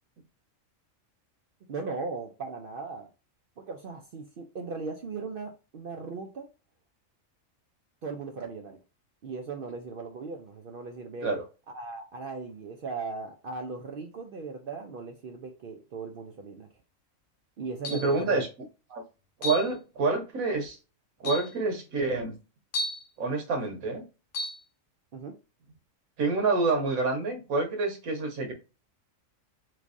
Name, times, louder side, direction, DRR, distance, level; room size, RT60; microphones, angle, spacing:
voice 1, 1.7-3.1 3.6-6.5 8.0-8.8 9.2-11.3 11.7-16.7 17.6-18.4 25.1-25.4, right 4 dB, 65° right, 0.5 m, -38 dB
sound 1, 17.8-18.2 19.4-19.7 20.6-20.7 21.2-21.5 22.7-23.1 24.3-24.6, left 2 dB, 60° left, 0.6 m, -33 dB
voice 2, 17.9-18.5 18.9-19.0 19.4-20.8 21.2-22.3 23.2-24.0 26.2-28.5, right 3 dB, 90° right, 1.4 m, -27 dB
3.4 x 3.2 x 2.5 m
omnidirectional pair, 1.4 m